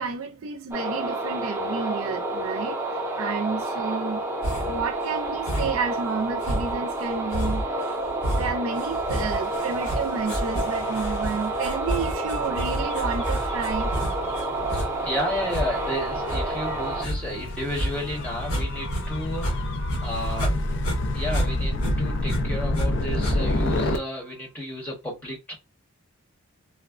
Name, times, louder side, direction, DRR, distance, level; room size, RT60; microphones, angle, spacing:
voice 1, 0.0-2.8 3.2-4.2 4.7-7.6 8.3-14.0 14.3-14.5, right 5 dB, 70° right, 0.4 m, -31 dB
sound 1, 0.7-17.1, right 2 dB, 10° right, 0.5 m, -29 dB
sound 2, 4.4-4.9 5.5-5.9 6.4-19.0 19.3-20.5 20.8-22.9 23.2-23.7, equal, 80° left, 1.4 m, -30 dB
Gull seagull / Waves surf / Siren, 9.2-24.0, left 1 dB, 55° left, 0.5 m, -30 dB
voice 2, 14.7-19.6 20.0-20.5 21.1-25.5, left 1 dB, 5° left, 0.9 m, -32 dB
3.4 x 2.1 x 2.4 m
head